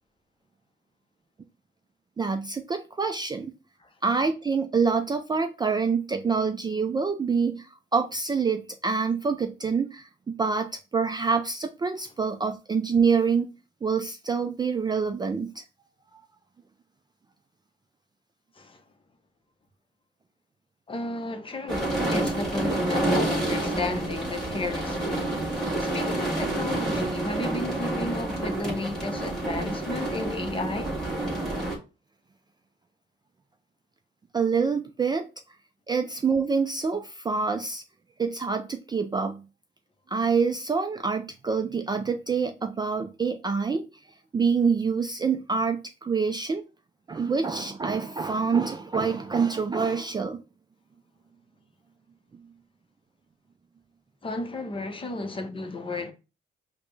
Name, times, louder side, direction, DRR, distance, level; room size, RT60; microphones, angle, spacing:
voice 1, 2.2-3.5 4.0-13.5 13.8-15.6 34.3-35.3 35.9-37.8 38.2-39.4 40.1-43.9 44.3-46.6 47.1-50.4, right 5 dB, 20° right, 0.3 m, -26 dB
voice 2, 20.9-25.4 25.8-30.9 54.2-56.1, left 2 dB, 25° left, 0.7 m, -33 dB
sound 1, 21.7-31.8, right 2 dB, 5° left, 1.6 m, -28 dB
4.9 x 2.1 x 3.2 m
cardioid pair, 90°, 20 cm